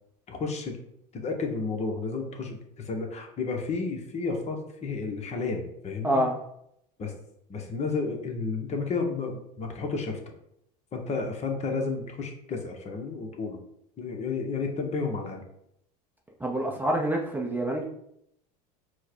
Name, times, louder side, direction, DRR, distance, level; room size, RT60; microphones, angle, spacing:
voice 1, 0.3-0.8 1.1-6.2 7.0-7.1 7.5-10.2 10.9-13.6 14.0-15.4, left 4 dB, 35° left, 3 dB, 0.9 m, -32 dB
voice 2, 16.4-17.9, right 1 dB, 10° right, -1 dB, 0.6 m, -26 dB
4.6 x 2.2 x 4.4 m, 0.75 s
supercardioid pair, 100°, 21 cm